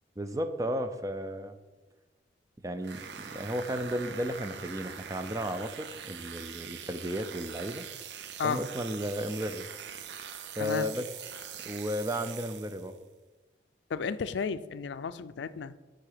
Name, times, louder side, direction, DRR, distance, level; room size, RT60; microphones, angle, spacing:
voice 1, 0.2-1.5 2.6-7.8 8.4-9.6 10.6-11.1 11.6-13.0, equal, 20° right, 9 dB, 0.4 m, -34 dB
sound 1, 2.8-13.0, right 7 dB, 80° right, 0.6 m, -43 dB
voice 2, 13.9-15.8, left 6 dB, 85° left, 14 dB, 0.4 m, -33 dB
7.6 x 3.9 x 6.6 m, 1.2 s
head